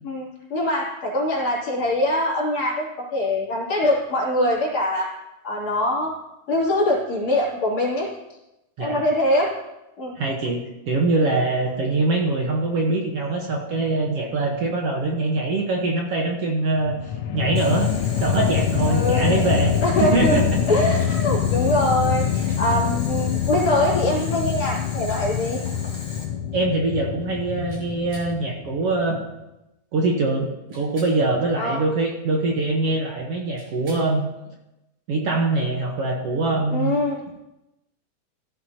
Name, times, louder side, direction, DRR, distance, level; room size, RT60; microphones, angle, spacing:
voice 1, 0.0-5.1 5.4-6.1 6.5-8.1 8.8-9.5 10.0-10.1 18.9-19.6 19.8-20.4 20.7-25.6 31.6-31.8 36.7-37.2, left 1 dB, 55° left, -6 dB, 4.1 m, -23 dB
voice 2, 10.2-17.0 17.3-19.7 20.0-20.8 26.5-29.2 29.9-34.2 35.1-36.9, right 2 dB, 60° right, 0 dB, 2.0 m, -23 dB
sound 1, 16.8-29.1, left 9 dB, 75° left, 1.3 m, -25 dB
Boiling, 17.5-26.2, left 1 dB, 10° left, 1.8 m, -39 dB
sound 2, 21.0-21.1 22.3-22.6 24.2-24.3 25.1-25.2 27.7-28.3 30.7-31.2 33.5-34.1 36.3-36.4, right 1 dB, 45° right, 5.6 m, -47 dB
15.5 x 12.0 x 2.9 m, 0.95 s
omnidirectional pair, 3.5 m